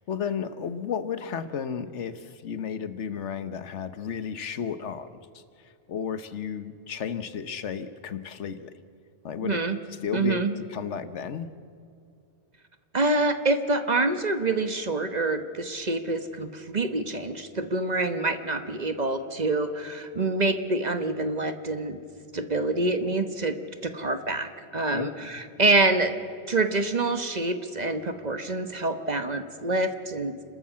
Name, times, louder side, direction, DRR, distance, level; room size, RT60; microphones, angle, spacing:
voice 1, 0.0-8.8 9.2-9.6 10.0-10.4 10.7-11.5 24.9-25.1, left 7 dB, 85° left, 12 dB, 1.3 m, -33 dB
voice 2, 9.4-9.8 10.1-10.5 12.9-22.0 22.3-23.6 23.8-30.3, right 2 dB, 40° right, 8 dB, 1.2 m, -26 dB
30.0 x 13.0 x 7.5 m, 2.4 s
omnidirectional pair, 1.2 m